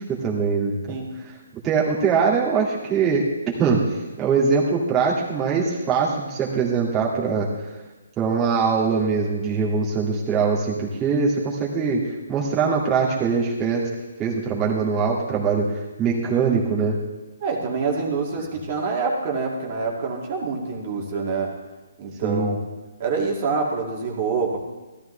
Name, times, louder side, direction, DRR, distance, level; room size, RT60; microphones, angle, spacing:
voice 1, 0.0-1.0 1.2-1.3 1.6-3.2 3.6-3.8 4.2-7.5 8.2-12.0 12.3-13.8 14.2-15.6 16.0-17.0 22.2-22.5, right 5 dB, 15° right, -5 dB, 2.2 m, -22 dB
voice 2, 17.4-21.5 22.0-22.6 23.0-24.6, right 4 dB, 40° right, 0 dB, 2.4 m, -26 dB
15.5 x 13.0 x 3.3 m, 1.2 s
figure-of-eight pair, 140°, 0 cm